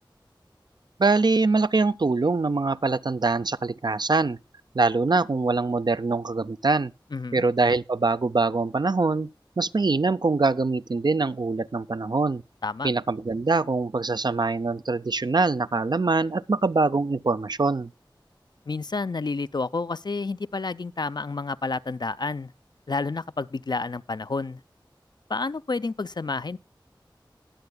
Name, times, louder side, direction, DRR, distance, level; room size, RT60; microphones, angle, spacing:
voice 1, 1.0-4.4 4.7-6.9 7.3-9.3 9.6-12.4 12.8-17.9, right 3 dB, 55° right, 0.4 m, -23 dB
voice 2, 7.1-7.4 12.6-12.9 18.7-22.5 22.9-24.6 25.3-26.6, left 3 dB, 55° left, 0.4 m, -30 dB
20.0 x 7.8 x 2.2 m
wide cardioid pair, 40°, 8 cm